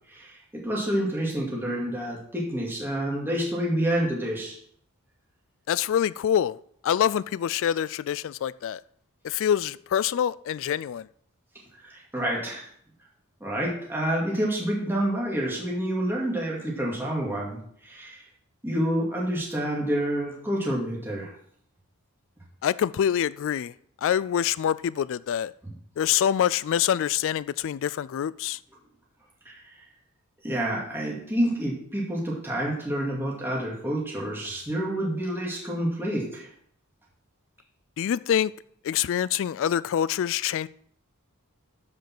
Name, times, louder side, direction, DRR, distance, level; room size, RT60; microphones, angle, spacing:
voice 1, 0.1-4.6 11.8-12.7 13.4-18.2 18.6-21.3 29.5-29.8 30.4-36.5, right 1 dB, 10° right, 2.3 m, -28 dB
voice 2, 5.7-6.6 6.8-8.8 9.2-11.1 22.6-23.7 24.0-25.5 26.0-28.6 38.0-38.5 38.8-40.7, left 9 dB, 60° left, 0.3 m, -25 dB
13.5 x 5.3 x 6.0 m
head